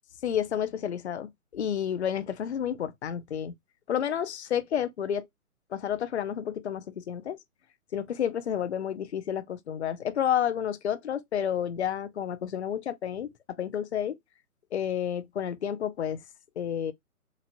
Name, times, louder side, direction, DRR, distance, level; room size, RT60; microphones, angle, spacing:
voice 1, 0.2-3.5 3.9-5.3 5.7-7.4 7.9-13.3 13.6-14.2 14.7-16.2 16.6-16.9, left 9 dB, 50° left, 0.5 m, -30 dB
2.9 x 2.4 x 2.6 m
figure-of-eight pair, 135°, 43 cm